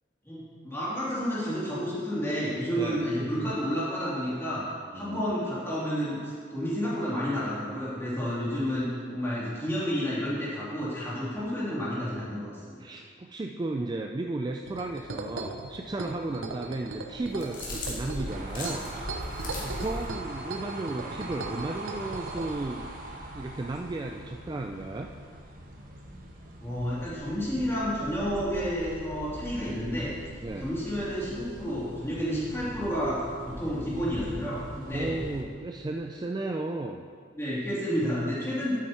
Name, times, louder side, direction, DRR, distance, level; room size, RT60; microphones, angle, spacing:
voice 1, 0.2-4.7 4.9-12.8 26.6-30.1 30.6-33.2 33.4-35.1 37.3-38.7, equal, 10° left, -9 dB, 2.9 m, -30 dB
voice 2, 2.8-3.1 3.4-3.5 4.9-5.2 12.8-18.9 19.6-22.8 23.3-25.1 30.4-30.7 34.9-37.0, right 2 dB, 20° right, 3 dB, 0.3 m, -34 dB
sound 1, 14.6-22.6, right 3 dB, 85° right, 0.9 m, -39 dB
sound 2, 17.2-20.1, left 1 dB, 45° left, 2.3 m, -37 dB
sound 3, 18.3-35.4, right 1 dB, 45° right, 1.1 m, -42 dB
10.0 x 8.6 x 4.3 m, 2.1 s
head